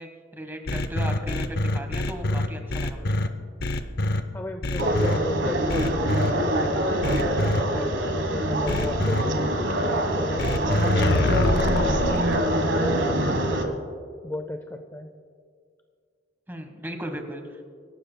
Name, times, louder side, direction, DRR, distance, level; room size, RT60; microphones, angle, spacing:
voice 1, 0.0-3.2 16.5-17.7, right 1 dB, 10° right, 5 dB, 1.3 m, -37 dB
sound 1, 0.7-3.3 3.6-4.2 4.6-5.2 5.7-6.3 7.0-7.6 8.7-9.2 10.4-12.3, left 1 dB, 60° left, 0.7 m, -25 dB
voice 2, 4.3-9.3 9.8-12.2 12.7-13.8 14.2-15.1, left 1 dB, 15° left, 6 dB, 0.5 m, -34 dB
sound 2, 4.8-13.6, right 1 dB, 90° right, 1.4 m, -25 dB
25.0 x 12.5 x 2.3 m, 2.1 s
head